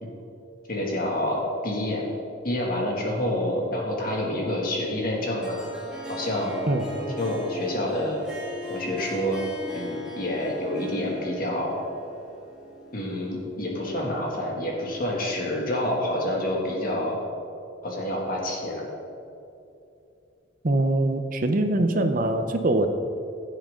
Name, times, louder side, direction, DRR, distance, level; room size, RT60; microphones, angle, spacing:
voice 1, 0.7-2.0 2.4-5.6 6.1-6.6 7.2-8.3 8.7-9.4 9.7-11.8 12.9-17.2 17.8-18.9, left 1 dB, 50° left, -2 dB, 2.2 m, -28 dB
Harp, 5.4-13.9, equal, 5° right, 2.1 m, -39 dB
voice 2, 20.6-22.9, right 2 dB, 45° right, 7 dB, 0.7 m, -23 dB
15.5 x 7.6 x 3.8 m, 2.7 s
head